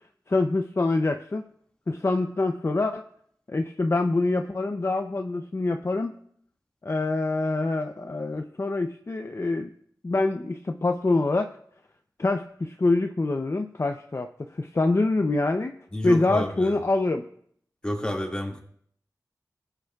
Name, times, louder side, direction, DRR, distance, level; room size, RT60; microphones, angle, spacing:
voice 1, 0.3-1.4 1.9-3.1 3.5-6.1 6.8-9.7 10.0-11.5 12.2-15.7 16.0-17.2, left 2 dB, 40° left, 5 dB, 0.6 m, -25 dB
voice 2, 15.9-16.8 17.8-18.6, left 1 dB, 15° left, 0 dB, 2.1 m, -29 dB
19.5 x 9.0 x 2.4 m, 0.63 s
wide cardioid pair, 75°, 7 cm